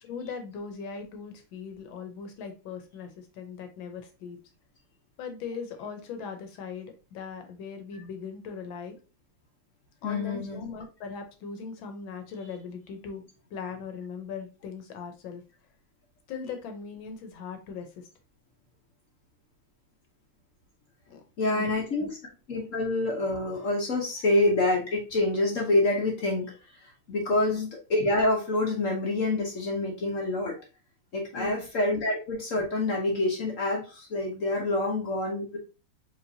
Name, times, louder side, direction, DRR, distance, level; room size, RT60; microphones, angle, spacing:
voice 1, 0.1-4.4 5.2-9.0 10.0-13.2 13.5-15.4 16.3-18.1 21.1-22.1 27.3-27.6 31.3-31.6, left 5 dB, 75° left, 6 dB, 1.5 m, -39 dB
voice 2, 10.0-10.7 21.4-22.1 22.5-26.5 26.8-30.6 31.1-35.6, left 2 dB, 55° left, 0 dB, 1.0 m, -27 dB
4.6 x 3.3 x 2.6 m, 0.33 s
omnidirectional pair, 2.2 m